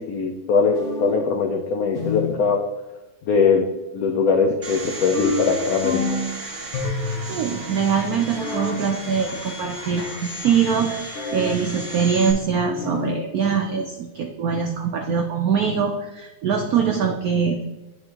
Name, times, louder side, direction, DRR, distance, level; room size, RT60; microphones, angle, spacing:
voice 1, 0.0-2.6 3.3-3.7 3.9-6.2, left 5 dB, 85° left, 3 dB, 0.8 m, -21 dB
sound 1, 0.7-1.3 1.9-2.5 5.1-6.3 6.7-7.4 8.3-8.8 11.1-11.7 12.7-13.3, left 3 dB, 55° left, 0.8 m, -28 dB
Domestic sounds home sounds, 4.6-12.3, right 1 dB, 35° right, 1.3 m, -35 dB
voice 2, 7.3-17.6, right 6 dB, 80° right, 3 dB, 0.8 m, -23 dB
9.6 x 4.3 x 2.9 m, 1.1 s
omnidirectional pair, 2.2 m